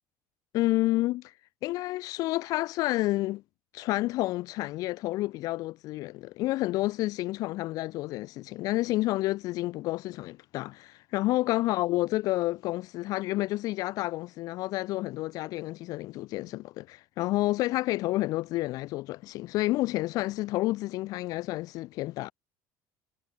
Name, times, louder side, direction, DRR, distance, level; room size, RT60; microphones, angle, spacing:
voice 1, 0.5-1.3 1.6-3.4 3.7-22.3, left 18 dB, 60° left, 1.2 m, -30 dB
cardioid pair, 135°, 7 cm